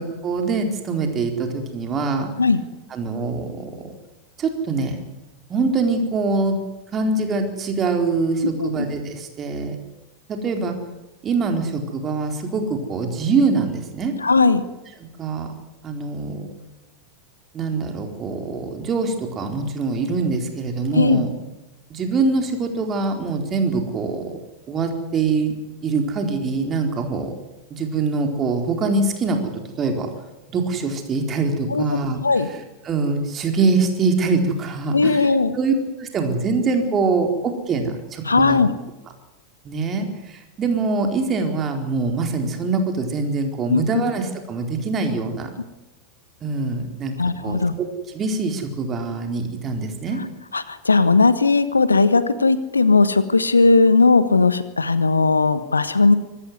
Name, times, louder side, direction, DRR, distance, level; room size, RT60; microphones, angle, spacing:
voice 1, 0.0-2.3 2.9-4.0 4.4-5.0 5.5-6.6 6.9-9.7 10.3-10.7 11.2-14.1 15.2-15.5 15.8-16.5 17.5-21.3 21.9-24.4 24.7-25.5 25.8-27.3 27.7-29.5 29.8-30.1 30.5-32.2 32.5-38.6 39.6-45.5 46.4-47.2 47.4-50.2, right 4 dB, 25° right, 4 dB, 4.3 m, -24 dB
voice 2, 8.4-8.9 14.2-14.6 20.9-21.2 31.7-32.5 34.9-35.5 38.2-38.7 43.7-43.8 47.2-47.7 50.5-56.1, left 3 dB, 80° left, 15 dB, 1.3 m, -17 dB
25.0 x 14.0 x 9.7 m, 0.99 s
figure-of-eight pair, 90°, 0 cm